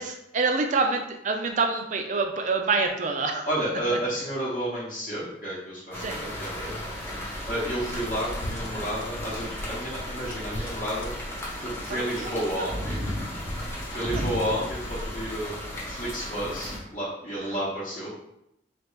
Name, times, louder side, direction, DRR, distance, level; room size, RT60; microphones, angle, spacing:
voice 1, 0.0-3.5 3.9-4.0 6.0-6.3 11.9-12.8 14.1-14.6 17.4-17.5, right 4 dB, 40° right, 4 dB, 0.4 m, -27 dB
voice 2, 3.5-6.7 7.5-11.1 11.6-13.0 13.9-15.5 15.8-18.1, equal, 45° left, -10 dB, 0.8 m, -31 dB
sound 1, 5.9-16.8, equal, 15° left, 0.6 m, -35 dB
sound 2, 7.8-16.2, left 1 dB, 65° left, 0.5 m, -41 dB
3.2 x 2.4 x 3.1 m, 0.81 s
head